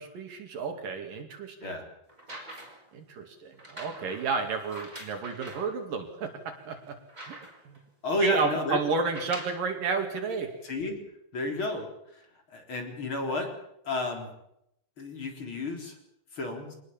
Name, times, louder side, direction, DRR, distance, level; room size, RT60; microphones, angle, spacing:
voice 1, 0.0-1.7 2.9-7.4 7.7-7.8 8.2-10.5, right 4 dB, 60° right, 5 dB, 3.9 m, -32 dB
sound 1, 2.1-2.9 3.6-5.7 6.3-6.4 6.7-7.8 9.0-9.7 10.6-10.7, right 1 dB, 10° right, 4.8 m, -45 dB
voice 2, 8.0-8.8 10.6-11.0 11.3-13.5 13.8-14.3 15.0-16.0 16.3-16.7, left 2 dB, 35° left, 4 dB, 4.1 m, -31 dB
24.5 x 19.5 x 7.3 m, 0.78 s
omnidirectional pair, 4.4 m